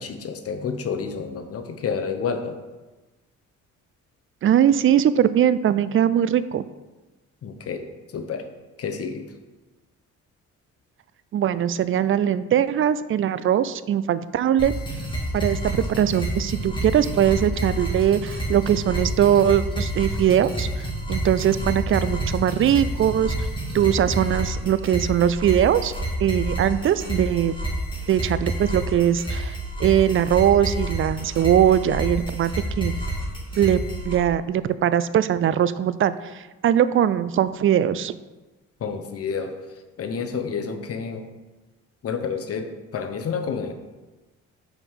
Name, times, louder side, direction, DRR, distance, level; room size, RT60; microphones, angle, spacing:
voice 1, 0.0-2.6 7.4-8.5 8.8-9.3 38.8-39.6 40.0-41.2 42.0-43.7, left 6 dB, 50° left, 6 dB, 0.9 m, -29 dB
voice 2, 4.4-6.7 11.3-14.7 15.3-23.5 23.7-25.9 26.2-27.5 28.1-33.0 33.6-38.2, right 10 dB, 45° right, 15 dB, 0.4 m, -21 dB
sound 1, 14.6-34.2, right 1 dB, 15° left, 2.3 m, -29 dB
5.3 x 4.8 x 5.5 m, 1.2 s
cardioid pair, 90°, 30 cm